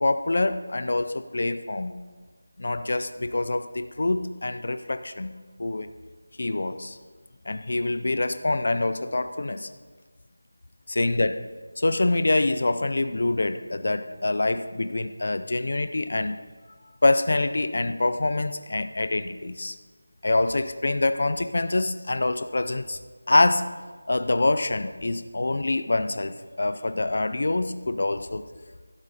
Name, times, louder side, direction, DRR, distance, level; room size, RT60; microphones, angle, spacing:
voice 1, 0.0-1.9 2.6-5.9 6.4-7.0 7.5-9.7 10.9-11.4 11.8-16.4 17.0-19.7 20.2-23.0 23.3-23.7 24.1-28.4, left 2 dB, 45° left, 11 dB, 0.4 m, -25 dB
12.0 x 7.9 x 4.1 m, 1.4 s
figure-of-eight pair, 175°, 0 cm